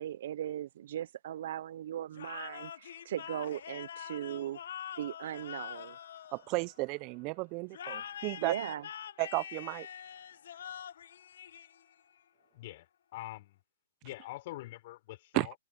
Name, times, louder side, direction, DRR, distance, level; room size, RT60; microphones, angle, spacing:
voice 1, 0.0-4.6 5.0-6.0 8.4-8.9, right 11 dB, 60° right, 1.0 m, -38 dB
sound 1, 2.1-7.0 7.7-12.1, left 9 dB, 65° left, 1.5 m, -45 dB
voice 2, 6.3-8.5 9.2-9.9 15.3-15.5, right 26 dB, 35° right, 0.8 m, -33 dB
voice 3, 12.5-13.6 14.0-15.5, left 17 dB, 50° left, 5.4 m, -44 dB
open air
hypercardioid pair, 135°, 0 cm